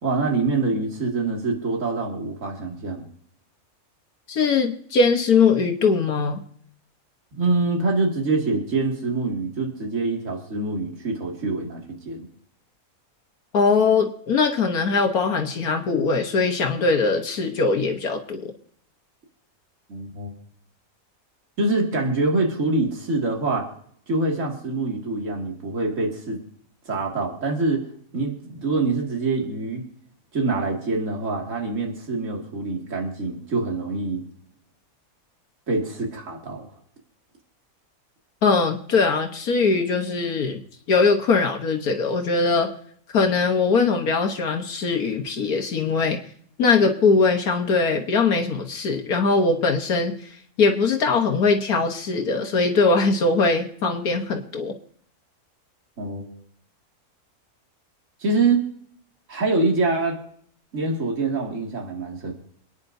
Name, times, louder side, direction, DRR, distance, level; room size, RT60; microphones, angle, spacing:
voice 1, 0.0-3.1 7.3-12.3 19.9-20.3 21.6-23.7 24.1-26.4 26.9-27.9 28.1-29.8 30.3-34.2 35.7-36.7 56.0-56.3 58.2-58.7 59.3-60.2 60.7-62.3, right 3 dB, 55° right, 0 dB, 2.7 m, -25 dB
voice 2, 4.3-6.4 13.5-18.5 38.4-40.6 40.9-42.7 43.1-46.2 46.6-50.1 50.6-54.7, left 4 dB, 80° left, 3 dB, 1.7 m, -21 dB
28.0 x 9.8 x 2.7 m, 0.63 s
omnidirectional pair, 1.6 m